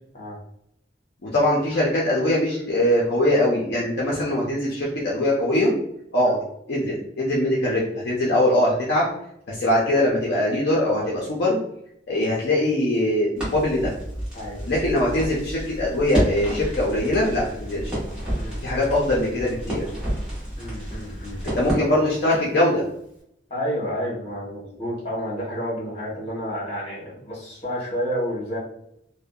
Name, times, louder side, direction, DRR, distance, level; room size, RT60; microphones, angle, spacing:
voice 1, 1.2-5.7 6.1-6.4 6.7-9.1 9.5-11.6 12.1-13.9 14.7-17.9 18.6-19.8 21.5-22.8, left 1 dB, 60° left, -5 dB, 0.5 m, -22 dB
Crackle, 13.4-22.6, equal, 5° right, 1.0 m, -30 dB
voice 2, 18.3-18.6 20.5-21.4 23.5-28.6, equal, 35° left, -5 dB, 1.2 m, -30 dB
2.6 x 2.1 x 2.3 m, 0.74 s
head